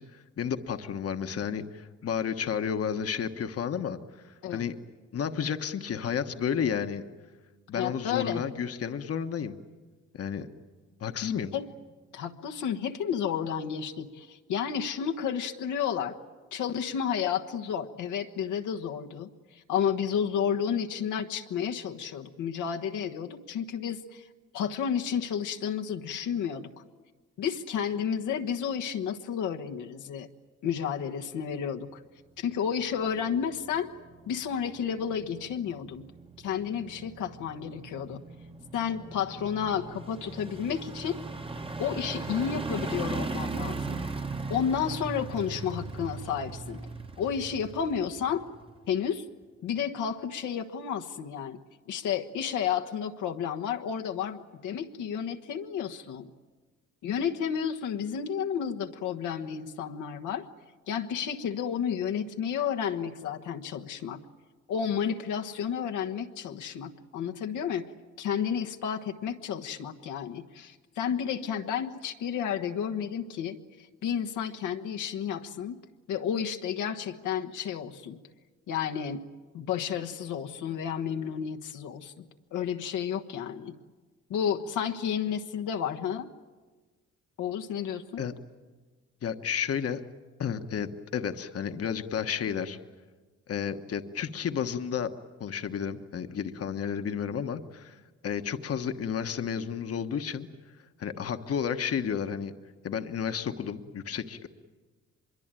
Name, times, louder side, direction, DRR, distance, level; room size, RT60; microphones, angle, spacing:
voice 1, 0.0-4.7 5.1-7.0 7.7-9.6 10.1-10.5 11.0-11.5 88.2-88.3 89.2-90.0 90.4-92.8 93.5-95.1 95.4-100.5 101.0-102.5 102.8-104.5, left 7 dB, 50° left, 8 dB, 1.3 m, -32 dB
voice 2, 7.7-8.4 11.5-11.7 12.1-16.1 16.5-24.3 24.5-26.7 27.4-30.3 30.6-32.0 32.4-33.9 34.3-36.1 36.4-38.2 38.7-41.2 41.8-44.0 44.5-46.8 47.2-48.4 48.9-49.2 49.6-51.6 51.9-56.3 57.0-60.4 60.9-64.2 64.7-67.8 68.2-75.8 76.1-78.2 78.7-79.2 79.5-82.2 82.5-83.7 84.3-86.3 87.4-88.2, left 8 dB, 80° left, 4 dB, 1.4 m, -31 dB
sound 1, 32.5-49.1 49.4-49.5, right 3 dB, 20° right, 1.2 m, -39 dB
24.5 x 22.5 x 9.0 m, 1.3 s
cardioid pair, 90°, 30 cm